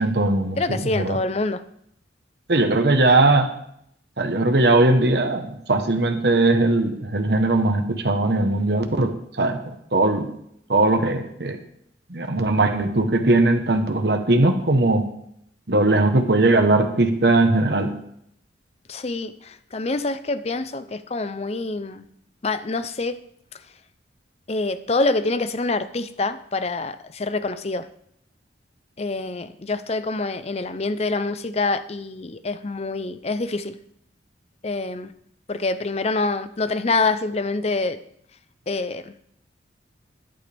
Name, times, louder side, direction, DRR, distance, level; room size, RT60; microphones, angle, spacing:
voice 1, 0.0-0.6 1.0-1.2 2.5-3.5 4.2-10.3 10.7-11.6 12.1-15.1 15.7-17.9, right 2 dB, 60° right, 5 dB, 1.1 m, -19 dB
voice 2, 0.6-1.6 18.9-22.0 22.4-23.2 24.5-27.9 29.0-33.7 34.6-35.1 35.5-38.0 38.7-39.1, left 3 dB, 35° left, 12 dB, 0.6 m, -26 dB
14.0 x 11.0 x 3.4 m, 0.72 s
head